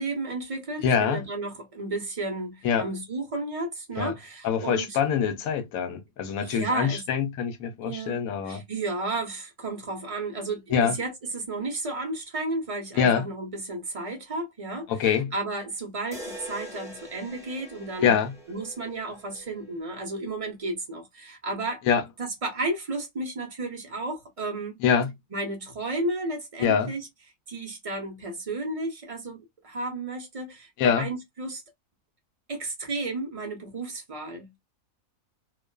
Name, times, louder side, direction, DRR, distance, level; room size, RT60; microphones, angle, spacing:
voice 1, 0.0-5.0 6.4-7.0 7.8-8.2 8.5-14.9 15.3-18.1 18.5-21.8 22.2-24.8 25.3-27.1 27.5-31.6 32.5-34.6, right 2 dB, 40° right, 0.5 m, -33 dB
voice 2, 0.8-1.2 2.6-2.9 4.0-4.1 4.4-8.6 10.7-11.0 12.9-13.3 14.9-15.3 18.0-18.3 21.8-22.0 24.8-25.1 26.6-26.9 30.8-31.1, left 7 dB, 90° left, 1.0 m, -24 dB
sound 1, 16.1-20.2, equal, 5° right, 0.7 m, -44 dB
2.4 x 2.4 x 2.2 m
omnidirectional pair, 1.4 m